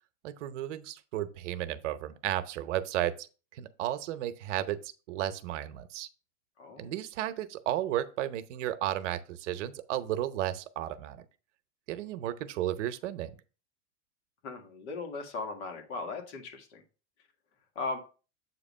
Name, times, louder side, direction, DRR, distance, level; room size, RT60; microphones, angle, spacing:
voice 1, 0.2-3.3 3.5-6.1 6.8-11.2 11.9-13.3, right 12 dB, 85° right, 0.8 m, -33 dB
voice 2, 6.6-6.9 14.4-16.8 17.8-18.0, left 3 dB, 70° left, 1.9 m, -38 dB
8.0 x 3.0 x 5.4 m
supercardioid pair, 155°, 35 cm